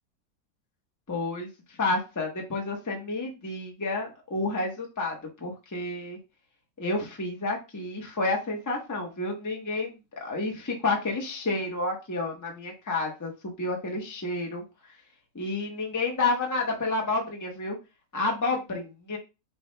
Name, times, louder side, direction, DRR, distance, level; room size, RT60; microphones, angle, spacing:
voice 1, 1.1-1.5 1.8-6.2 6.8-13.3 13.6-14.6 15.3-17.8 18.1-19.2, left 2 dB, 15° left, 1 dB, 0.8 m, -30 dB
5.9 x 2.4 x 3.3 m, 0.27 s
omnidirectional pair, 1.9 m